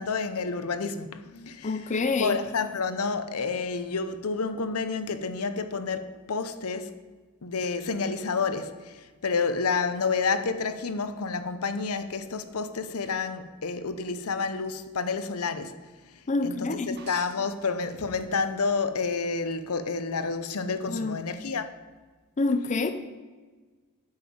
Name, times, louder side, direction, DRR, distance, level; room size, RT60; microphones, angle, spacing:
voice 1, 0.0-1.9 2.2-7.0 7.4-15.7 16.4-21.7, left 4 dB, 75° left, 0.8 m, -29 dB
voice 2, 1.6-2.4 16.3-17.0 20.9-21.2 22.4-22.9, left 3 dB, 35° left, 0.5 m, -27 dB
sound 1, 16.9-18.6 19.0-19.6 21.2-21.3, right 4 dB, 50° right, 1.4 m, -48 dB
8.8 x 5.6 x 7.7 m
head